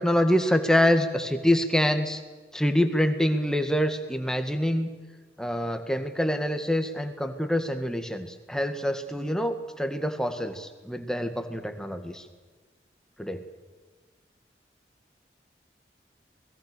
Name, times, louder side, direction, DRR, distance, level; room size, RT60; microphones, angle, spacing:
voice 1, 0.0-2.2 2.5-4.9 5.4-12.3 13.2-13.4, equal, 5° left, 7 dB, 1.9 m, -26 dB
27.5 x 21.0 x 6.9 m, 1.4 s
head